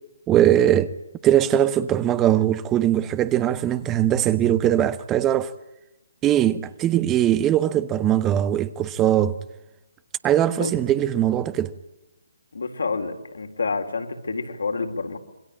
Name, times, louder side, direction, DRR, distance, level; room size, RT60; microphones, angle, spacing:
voice 1, 0.3-0.9 1.2-5.5 6.2-9.4 10.2-11.7, right 11 dB, 15° right, 1.1 m, -20 dB
voice 2, 12.5-15.2, left 4 dB, 70° left, 4.3 m, -28 dB
27.0 x 23.5 x 8.7 m
figure-of-eight pair, 140°, 0 cm